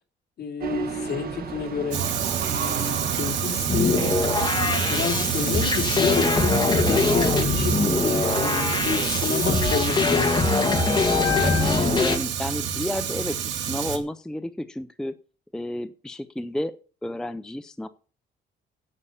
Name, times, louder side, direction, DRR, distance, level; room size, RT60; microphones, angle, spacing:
voice 1, 0.4-2.0 2.5-4.2 4.8-10.6, left 6 dB, 60° left, 2.8 m, -30 dB
sound 1, 0.6-12.1, right 5 dB, 55° right, 1.8 m, -34 dB
Fire, 1.9-14.0, right 8 dB, 80° right, 2.2 m, -28 dB
sound 2, 3.7-12.2, left 4 dB, 25° left, 1.8 m, -23 dB
voice 2, 12.0-15.2 15.5-16.7 17.0-17.9, left 1 dB, 5° left, 0.5 m, -31 dB
9.7 x 8.6 x 7.0 m
cardioid pair, 165°, 19 cm